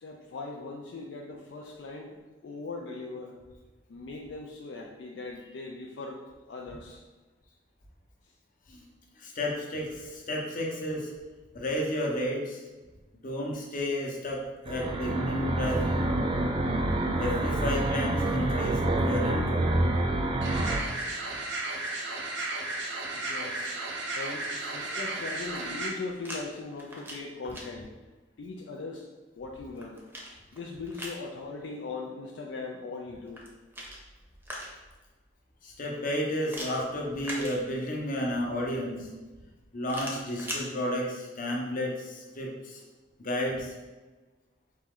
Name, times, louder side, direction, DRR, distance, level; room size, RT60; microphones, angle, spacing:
voice 1, 0.0-2.2 2.4-3.3 3.9-7.0 23.1-23.8 24.2-27.9 28.4-29.1 29.4-30.0 30.5-33.4, left 3 dB, 70° left, 0 dB, 0.4 m, -39 dB
voice 2, 9.2-11.1 11.5-12.6 13.1-16.2 17.2-19.6 35.6-39.1 39.7-42.8 43.2-43.7, left 1 dB, 45° left, -1 dB, 0.9 m, -32 dB
sound 1, 14.7-20.8, right 1 dB, 30° right, 0.4 m, -27 dB
sound 2, 20.4-25.9, right 2 dB, 70° right, 0.7 m, -34 dB
sound 3, 25.3-26.4 26.7-27.6 29.4-31.2 33.2-35.0 36.5-38.1 39.8-40.6, equal, 10° right, 0.7 m, -41 dB
4.2 x 3.1 x 3.7 m, 1.2 s
head